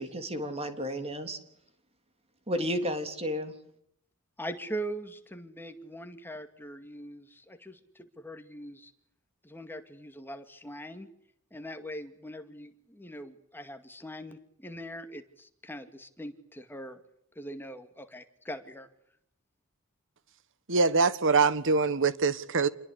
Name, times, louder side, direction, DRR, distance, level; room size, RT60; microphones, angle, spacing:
voice 1, 0.0-1.4 2.5-3.5, equal, 30° right, 3.4 m, -32 dB
voice 2, 4.4-8.9 9.4-11.1 11.5-17.0 17.4-18.9, right 1 dB, 10° left, 2.2 m, -42 dB
voice 3, 20.7-22.7, right 4 dB, 60° right, 1.4 m, -24 dB
27.5 x 22.0 x 8.4 m
head